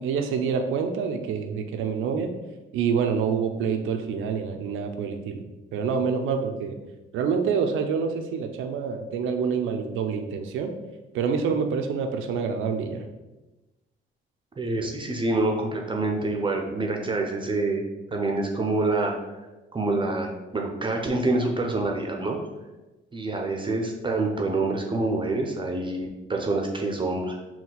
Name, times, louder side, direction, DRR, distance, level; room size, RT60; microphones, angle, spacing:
voice 1, 0.0-2.3 2.7-5.4 5.7-6.8 7.1-10.7 11.1-13.0, right 6 dB, 85° right, 5 dB, 0.5 m, -27 dB
voice 2, 14.6-17.8 18.1-19.1 19.7-22.4 23.1-27.4, right 2 dB, 25° right, 2 dB, 0.5 m, -26 dB
4.2 x 2.2 x 4.0 m, 1.1 s
cardioid pair, 90°, 20 cm